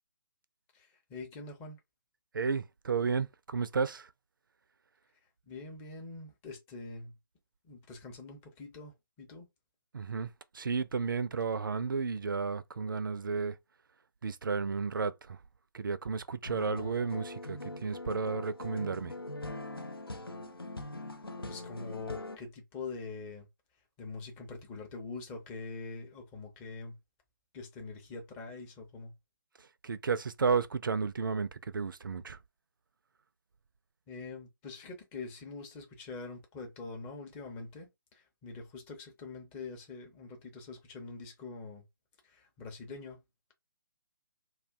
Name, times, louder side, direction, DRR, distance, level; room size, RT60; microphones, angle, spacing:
voice 1, 0.7-1.8 5.5-7.1 7.6-9.5 21.5-23.5 24.0-26.9 27.5-29.1 34.1-41.8 42.2-43.2, left 3 dB, 15° left, 0.6 m, -44 dB
voice 2, 2.3-4.1 9.9-13.6 14.2-15.4 15.7-19.1 29.6-32.4, right 5 dB, 65° right, 0.4 m, -33 dB
sound 1, 16.4-22.4, left 2 dB, 85° left, 0.5 m, -42 dB
2.3 x 2.2 x 3.4 m
figure-of-eight pair, 140°, 12 cm